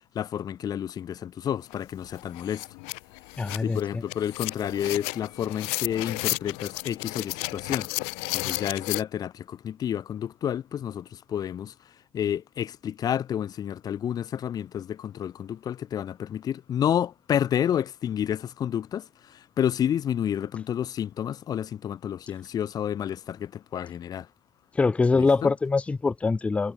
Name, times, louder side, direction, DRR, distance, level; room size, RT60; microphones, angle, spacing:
voice 1, 0.1-2.7 3.6-7.9 8.3-24.3 25.1-25.5, left 9 dB, 40° left, 1.6 m, -30 dB
sound 1, 1.7-1.8 2.1-9.0, left 40 dB or more, 85° left, 0.6 m, -33 dB
voice 2, 3.4-4.0 24.7-26.7, left 4 dB, 10° left, 0.4 m, -24 dB
cardioid pair, 130°, 10 cm